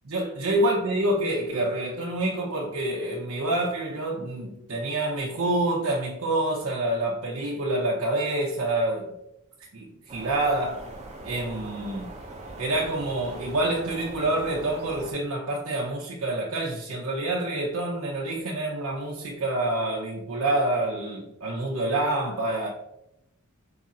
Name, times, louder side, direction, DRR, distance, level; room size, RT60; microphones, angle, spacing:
voice 1, 0.0-9.1 9.7-10.8 11.2-12.1 12.6-22.7, right 1 dB, 75° right, -2 dB, 0.6 m, -27 dB
sound 1, 10.1-15.1, right 2 dB, 30° right, 0.7 m, -41 dB
4.7 x 2.5 x 4.2 m, 0.86 s
head